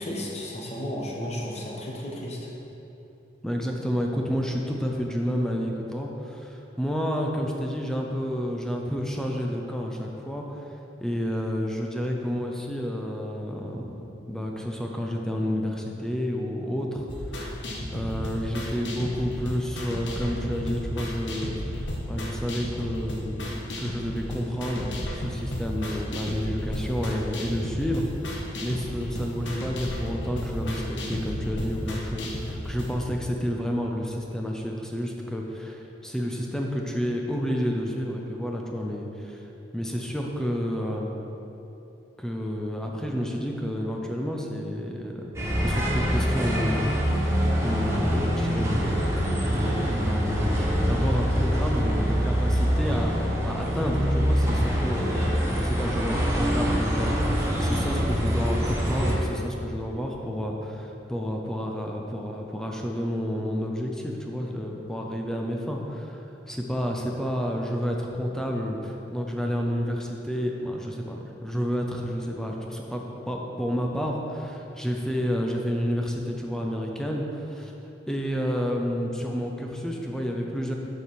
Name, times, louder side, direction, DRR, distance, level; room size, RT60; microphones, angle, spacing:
voice 1, 0.0-2.5, left 1 dB, 35° left, -2 dB, 1.0 m, -33 dB
voice 2, 3.4-10.6 11.0-17.6 17.9-28.1 28.6-39.4 39.7-41.1 42.2-49.2 49.5-77.7 78.1-80.7, equal, 5° left, 0 dB, 0.6 m, -30 dB
sound 1, 17.1-32.9, left 1 dB, 85° left, 1.0 m, -33 dB
sound 2, 45.3-59.1, equal, 15° right, 1.1 m, -25 dB
6.9 x 5.3 x 4.6 m, 3.0 s
head